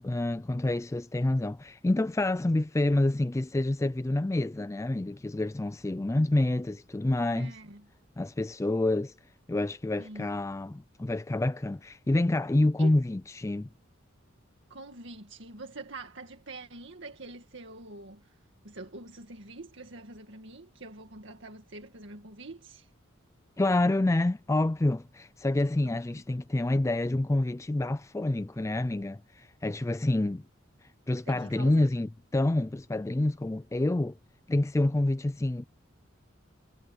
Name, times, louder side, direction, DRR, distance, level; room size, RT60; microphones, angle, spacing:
voice 1, 0.0-7.5 8.2-9.1 9.5-13.7 23.6-30.4 31.1-34.1 34.5-35.6, left 2 dB, 15° left, 0.4 m, -27 dB
voice 2, 7.3-7.9 10.0-10.3 12.8-13.0 14.7-18.4 18.6-22.9 25.8-26.2 31.3-31.9, right 2 dB, 65° right, 2.0 m, -45 dB
head